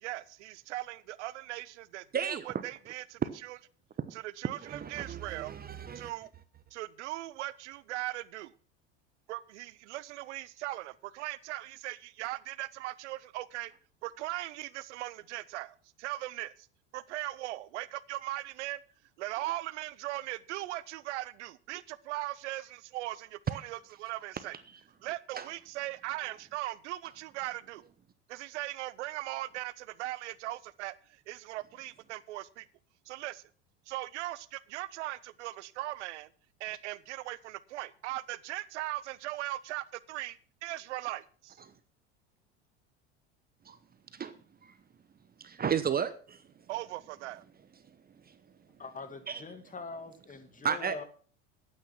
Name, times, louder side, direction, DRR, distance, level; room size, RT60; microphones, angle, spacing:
voice 1, 0.0-3.6 4.1-5.5 5.9-6.3 6.7-8.5 9.3-13.7 14.0-16.7 16.9-18.8 19.2-24.6 25.0-27.8 28.3-32.7 33.1-33.4 33.9-36.3 36.6-41.6 46.7-47.4, right 17 dB, 75° right, 20 dB, 0.7 m, -39 dB
voice 2, 2.1-2.5 4.0-4.1 4.6-6.1 25.4-25.5 43.7-43.8 44.1-44.3 44.6-44.8 45.4-46.4 48.3-48.4 49.3-49.4 50.6-51.0, right 7 dB, 25° right, 13 dB, 0.9 m, -33 dB
voice 3, 48.8-51.0, left 4 dB, 20° left, 9 dB, 2.1 m, -43 dB
12.5 x 8.9 x 5.9 m, 0.43 s
hypercardioid pair, 85°, 36 cm